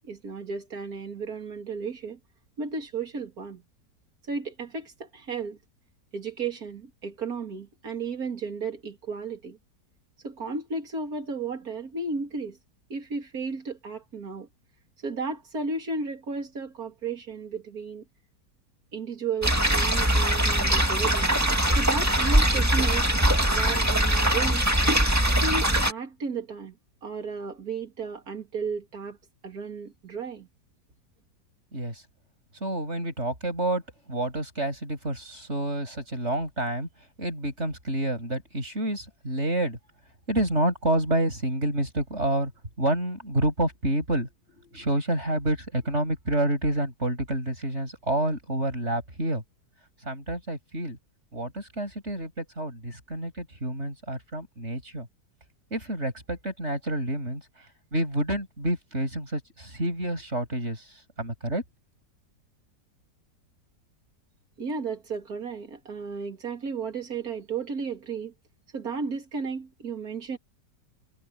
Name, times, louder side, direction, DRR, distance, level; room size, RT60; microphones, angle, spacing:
voice 1, 0.1-2.2 2.6-3.6 4.3-5.6 6.1-9.6 10.2-12.6 12.9-14.5 15.0-18.0 18.9-21.4 21.7-23.1 23.5-24.7 25.4-26.7 27.0-29.2 29.4-30.5 64.6-68.3 68.7-70.4, right 4 dB, 55° right, 3.4 m, -34 dB
sound 1, 19.4-25.9, right 1 dB, 10° right, 2.1 m, -22 dB
voice 2, 31.7-32.0 32.6-33.8 34.1-36.9 37.2-39.8 40.3-42.5 42.8-49.4 50.0-51.0 51.3-55.1 55.7-57.4 57.9-61.6, right 1 dB, 40° right, 7.7 m, -28 dB
omnidirectional pair, 1.8 m